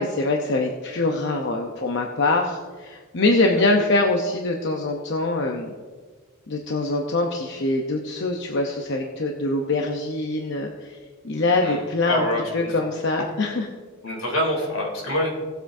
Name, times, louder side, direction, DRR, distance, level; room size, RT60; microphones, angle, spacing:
voice 1, 0.0-5.7 6.5-11.0 11.2-12.2 12.5-13.7, left 2 dB, 60° left, 2 dB, 0.8 m, -24 dB
voice 2, 12.1-12.7 14.0-15.3, left 1 dB, 90° left, -1 dB, 3.1 m, -25 dB
18.0 x 8.0 x 2.7 m, 1.5 s
head